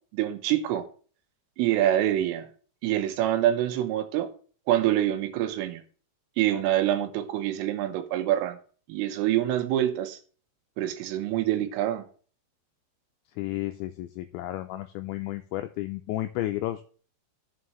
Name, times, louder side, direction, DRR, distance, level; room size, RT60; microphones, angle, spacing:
voice 1, 0.1-0.9 1.6-2.5 2.8-4.3 4.7-5.8 6.4-8.6 8.9-10.2 10.8-12.1, right 12 dB, 85° right, 3.6 m, -26 dB
voice 2, 13.4-16.8, left 15 dB, 90° left, 2.6 m, -32 dB
13.0 x 7.6 x 3.1 m
omnidirectional pair, 5.8 m